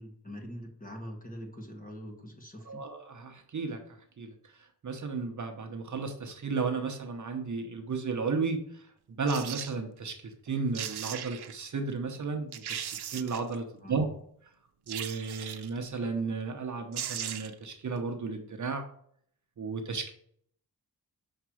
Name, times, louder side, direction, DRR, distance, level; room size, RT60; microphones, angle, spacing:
voice 1, 0.0-2.8 13.8-14.1, equal, 20° left, 1 dB, 1.4 m, -43 dB
voice 2, 2.7-3.8 4.2-4.3 4.8-12.8 13.1-14.1 14.9-18.8 19.6-20.1, right 4 dB, 50° right, 4 dB, 0.9 m, -34 dB
sound 1, 9.3-9.7 10.5-10.6 10.7-11.6 12.1-12.2 12.5-13.6 14.9-15.8 16.6-16.7 16.9-17.7 18.0-18.1, right 9 dB, 80° right, 0.6 m, -38 dB
6.0 x 4.5 x 6.2 m, 0.65 s
wide cardioid pair, 175°, 39 cm